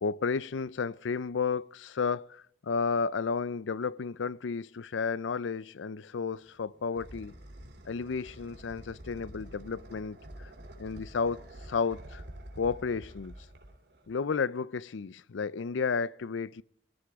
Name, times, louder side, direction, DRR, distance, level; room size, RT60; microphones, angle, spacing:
voice 1, 0.0-7.3 7.9-10.2 10.8-11.4 11.7-12.2 12.6-13.3 14.1-16.6, left 5 dB, 90° left, 0.5 m, -32 dB
sound 1, 6.3-14.3, right 1 dB, 70° right, 2.9 m, -48 dB
22.5 x 15.0 x 3.6 m
head